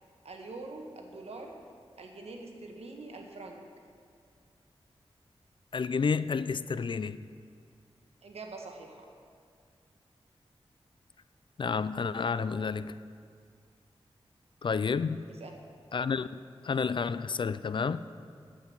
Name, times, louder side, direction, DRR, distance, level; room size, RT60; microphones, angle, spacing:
voice 1, 0.2-1.5 2.0-3.6 8.2-9.1 15.4-15.5, right 3 dB, 85° right, 1.3 m, -44 dB
voice 2, 5.7-7.2 11.6-12.9 14.6-15.2 15.9-16.3 16.6-18.0, left 5 dB, 50° left, 0.3 m, -30 dB
8.7 x 7.8 x 7.2 m
wide cardioid pair, 75°, 10 cm